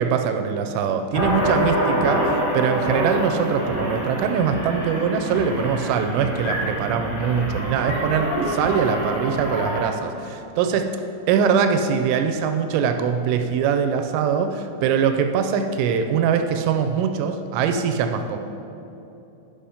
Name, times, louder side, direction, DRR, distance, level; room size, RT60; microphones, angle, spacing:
voice 1, 0.0-10.9 11.3-18.4, right 7 dB, 85° right, 6 dB, 2.8 m, -22 dB
sound 1, 1.1-9.8, equal, 75° left, 4.9 m, -26 dB
10.0 x 5.1 x 5.5 m, 2.9 s
omnidirectional pair, 5.8 m